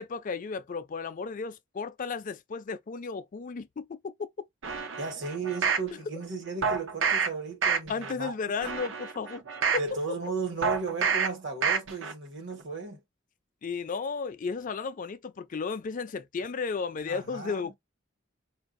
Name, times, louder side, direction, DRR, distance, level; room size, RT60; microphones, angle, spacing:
voice 1, 0.0-4.1 7.9-9.4 13.6-17.7, left 5 dB, 45° left, 0.4 m, -34 dB
sound 1, 4.6-5.9 6.6-7.3 7.6-8.1 8.6-9.9 10.6-11.3 11.6-12.1 12.5-12.6, right 6 dB, 80° right, 0.7 m, -28 dB
voice 2, 5.0-8.3 9.8-13.0 17.1-17.6, right 4 dB, 65° right, 1.2 m, -35 dB
4.5 x 2.6 x 2.5 m
head